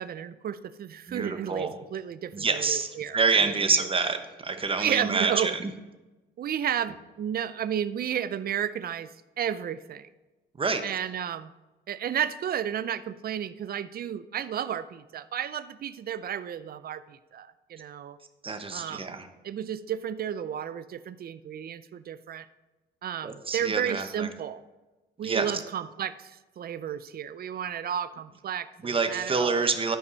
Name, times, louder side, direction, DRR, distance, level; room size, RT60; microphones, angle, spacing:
voice 1, 0.0-3.9 4.8-5.5 6.4-9.1 9.4-10.1 10.8-11.5 11.9-18.2 18.7-19.2 19.4-22.5 23.0-24.6 25.2-29.7, right 9 dB, 50° right, 15 dB, 0.4 m, -32 dB
voice 2, 1.1-1.7 2.3-5.7 10.6-10.8 18.4-19.3 23.2-24.3 25.2-25.5 28.8-30.0, right 4 dB, 25° right, 8 dB, 1.0 m, -27 dB
12.5 x 5.4 x 4.0 m, 1.1 s
cardioid pair, 90°, 20 cm